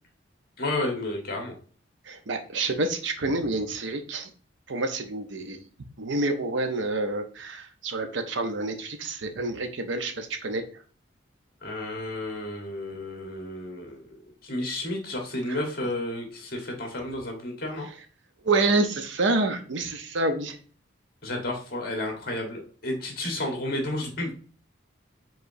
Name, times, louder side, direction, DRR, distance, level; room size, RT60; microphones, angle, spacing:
voice 1, 0.6-1.5 11.6-17.9 21.2-24.3, left 1 dB, 50° left, 2 dB, 1.4 m, -32 dB
voice 2, 2.1-4.3 4.7-5.6 6.0-10.6 15.5-15.6 18.4-20.6, right 2 dB, 70° right, 7 dB, 0.7 m, -28 dB
4.8 x 3.8 x 2.7 m, 0.41 s
head